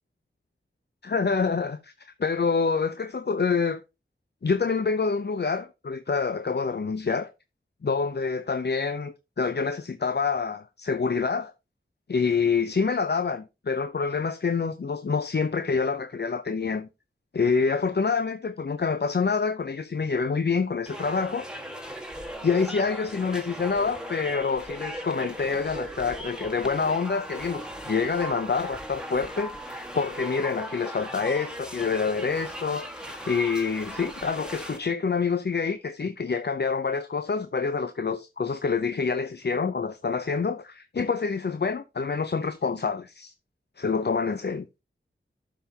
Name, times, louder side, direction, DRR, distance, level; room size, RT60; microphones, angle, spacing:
voice 1, 1.0-3.8 4.4-7.3 7.8-11.5 12.1-16.9 17.3-21.5 22.4-43.3 43.8-44.7, left 5 dB, 55° left, 0.6 m, -27 dB
sound 1, 20.9-34.8, right 1 dB, 5° right, 1.7 m, -38 dB
12.5 x 5.7 x 2.8 m
wide cardioid pair, 50°, 21 cm